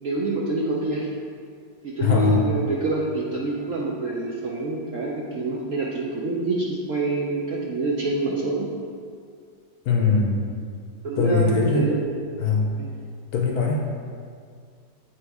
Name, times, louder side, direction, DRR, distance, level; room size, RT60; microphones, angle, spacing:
voice 1, 0.0-1.1 1.8-8.7 11.0-12.0 12.8-12.9, right 2 dB, 65° right, -4 dB, 0.8 m, -26 dB
voice 2, 2.0-2.4 9.9-10.3 11.2-11.9 12.4-12.7 13.3-13.8, left 4 dB, 65° left, 0 dB, 1.1 m, -21 dB
7.6 x 3.1 x 4.6 m, 2.1 s
omnidirectional pair, 2.0 m